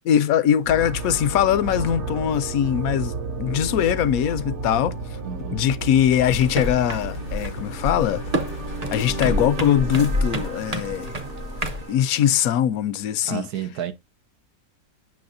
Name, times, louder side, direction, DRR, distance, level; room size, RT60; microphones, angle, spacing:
voice 1, 0.0-5.0 5.5-8.2 8.9-11.2 11.9-13.5, left 10 dB, 75° left, 1.0 m, -21 dB
sound 1, 0.6-12.6, right 3 dB, 55° right, 1.1 m, -33 dB
voice 2, 5.2-5.6 13.2-13.9, right 10 dB, 85° right, 1.4 m, -31 dB
sound 2, 6.1-12.0, left 6 dB, 50° left, 0.6 m, -44 dB
sound 3, 6.3-11.8, equal, 35° right, 0.7 m, -29 dB
8.5 x 6.1 x 2.5 m
omnidirectional pair, 1.6 m